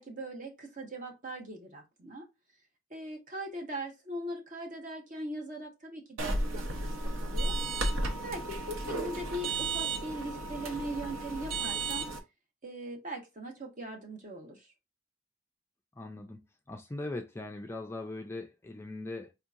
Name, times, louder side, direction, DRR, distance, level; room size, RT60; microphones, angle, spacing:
voice 1, 0.0-2.2 2.9-7.6 8.2-12.0 12.6-14.7, right 1 dB, 40° right, 1.0 m, -40 dB
sound 1, 6.2-12.2, right 2 dB, 85° right, 0.8 m, -33 dB
voice 2, 16.0-16.4 16.7-19.3, left 2 dB, 10° left, 0.3 m, -40 dB
4.5 x 2.7 x 2.4 m
head